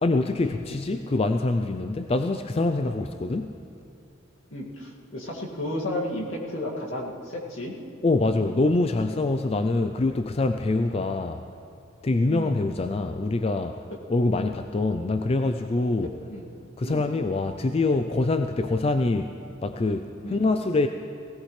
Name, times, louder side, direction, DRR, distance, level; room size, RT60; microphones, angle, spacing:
voice 1, 0.0-3.5 8.0-11.4 12.0-16.1 16.8-19.3 19.6-20.9, left 2 dB, 30° left, 7 dB, 0.3 m, -25 dB
voice 2, 4.5-7.7 9.5-9.7 12.3-12.6 14.3-14.5 16.3-16.5 16.8-17.1 20.2-20.4, left 1 dB, 75° left, -3 dB, 2.2 m, -33 dB
19.0 x 17.0 x 3.3 m, 2.5 s
head